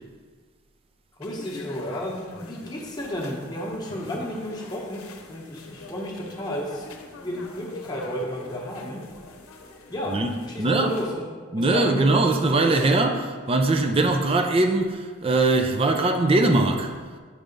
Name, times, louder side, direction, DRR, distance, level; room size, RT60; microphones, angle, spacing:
sound 1, 1.2-11.1, left 2 dB, 80° left, 0.8 m, -44 dB
voice 1, 1.2-9.0 9.9-11.3 11.5-12.9, equal, 20° left, 1.0 m, -32 dB
voice 2, 10.1-10.9 11.5-16.9, right 2 dB, 25° right, 0.4 m, -21 dB
7.5 x 3.4 x 5.2 m
head